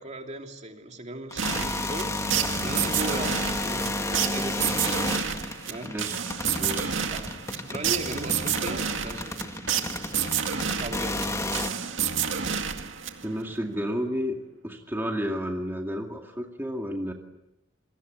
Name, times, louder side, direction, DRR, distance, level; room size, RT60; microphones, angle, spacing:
voice 1, 0.0-2.1 2.6-5.1 5.7-5.9 7.1-7.3 7.6-9.5 10.7-11.3, right 1 dB, 35° right, 3 dB, 2.9 m, -37 dB
sound 1, 1.3-11.7, left 1 dB, 15° left, 1.8 m, -32 dB
sound 2, 1.4-13.5, right 7 dB, 75° right, 2.0 m, -30 dB
voice 2, 5.8-6.2 6.6-6.9 13.2-14.4 14.6-17.1, equal, 10° right, 1 dB, 2.2 m, -31 dB
28.0 x 22.5 x 8.2 m, 0.90 s
head